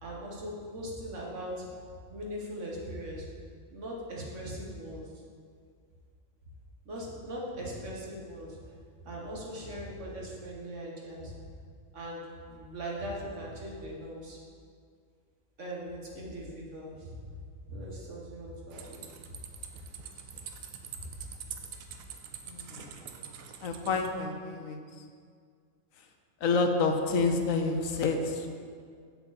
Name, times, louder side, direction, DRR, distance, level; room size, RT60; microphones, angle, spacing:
voice 1, 0.0-1.7 2.1-3.3 3.7-5.1 6.9-8.6 9.1-11.3 11.9-12.2 12.5-14.4 15.6-17.1 17.7-19.0, equal, 65° right, -3 dB, 1.8 m, -40 dB
sound 1, 18.7-24.1, right 7 dB, 85° right, 1.1 m, -45 dB
voice 2, 22.5-22.9 23.6-25.0 26.4-28.5, left 4 dB, 80° left, 5 dB, 1.2 m, -29 dB
8.0 x 7.6 x 4.2 m, 2.1 s
omnidirectional pair, 1.4 m